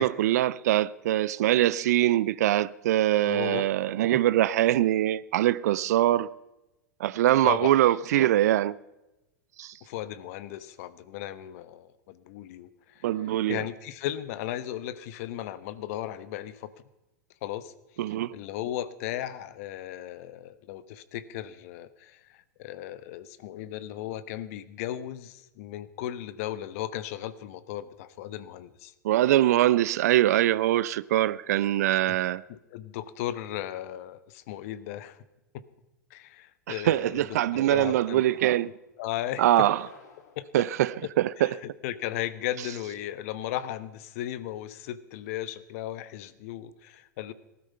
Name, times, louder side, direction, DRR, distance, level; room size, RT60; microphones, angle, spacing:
voice 1, 0.0-6.3 7.0-8.8 9.6-9.7 13.0-13.6 18.0-18.4 29.0-32.4 36.7-38.7 39.4-39.8 40.5-41.5, right 13 dB, 65° right, 0.5 m, -23 dB
voice 2, 3.2-3.6 4.1-4.2 7.4-7.7 9.8-16.7 17.4-17.7 18.1-28.9 32.1-32.2 32.5-35.2 35.5-35.6 36.1-37.2 37.5-38.2 39.0-39.7 40.4-40.7 41.4-47.3, left 12 dB, 55° left, 1.1 m, -36 dB
sound 1, 37.9-38.7 39.4-40.5, left 5 dB, 75° left, 2.8 m, -51 dB
19.0 x 13.0 x 5.5 m
hypercardioid pair, 100°, 9 cm